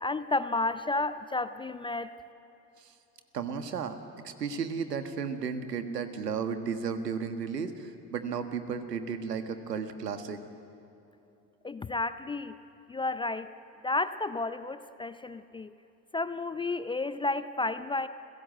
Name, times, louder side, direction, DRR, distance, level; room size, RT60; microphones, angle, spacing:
voice 1, 0.0-2.1 11.6-12.5 12.9-13.5 13.8-15.7 16.1-18.1, left 2 dB, 10° left, 13 dB, 0.4 m, -31 dB
voice 2, 3.3-4.0 4.2-10.4, right 6 dB, 85° right, 9 dB, 1.6 m, -34 dB
29.0 x 16.5 x 7.7 m, 2.9 s
figure-of-eight pair, 75°, 47 cm